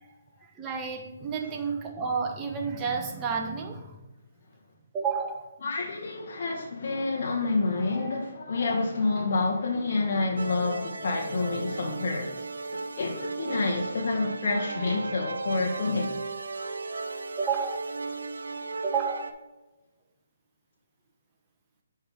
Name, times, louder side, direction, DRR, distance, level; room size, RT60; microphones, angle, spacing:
voice 1, 0.4-4.0 4.9-5.6 17.4-17.8 18.8-19.5, right 5 dB, 15° right, 2 dB, 1.0 m, -31 dB
voice 2, 5.6-16.2, left 3 dB, 55° left, -1 dB, 1.2 m, -28 dB
sound 1, 10.4-19.3, right 3 dB, 85° right, 0.7 m, -36 dB
7.9 x 5.7 x 3.5 m, 1.1 s
hypercardioid pair, 155°, 0 cm